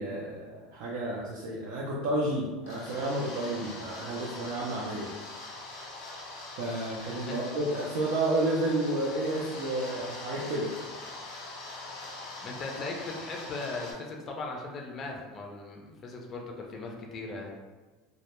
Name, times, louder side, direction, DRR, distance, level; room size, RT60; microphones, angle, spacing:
voice 1, 0.0-5.1 6.6-10.7, right 1 dB, 75° right, -5 dB, 0.4 m, -31 dB
sound 1, 2.6-13.9, left 2 dB, 90° left, 0.6 m, -42 dB
voice 2, 12.4-17.5, left 3 dB, 35° left, 0 dB, 0.4 m, -38 dB
2.1 x 2.0 x 2.9 m, 1.3 s
supercardioid pair, 135°, 0 cm